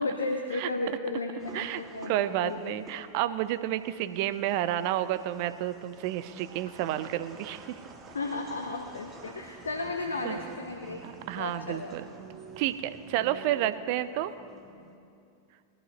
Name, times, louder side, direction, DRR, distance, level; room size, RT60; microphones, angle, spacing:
voice 1, 0.0-2.8 8.1-11.0 11.4-11.9, left 2 dB, 75° left, 4 dB, 0.8 m, -34 dB
sound 1, 1.4-14.9, right 4 dB, 25° right, 1.3 m, -50 dB
voice 2, 2.1-7.6 10.2-10.4 11.0-12.0 12.6-14.3, right 12 dB, 45° right, 13 dB, 0.5 m, -30 dB
19.5 x 12.0 x 4.0 m, 2.5 s
figure-of-eight pair, 90°, 0 cm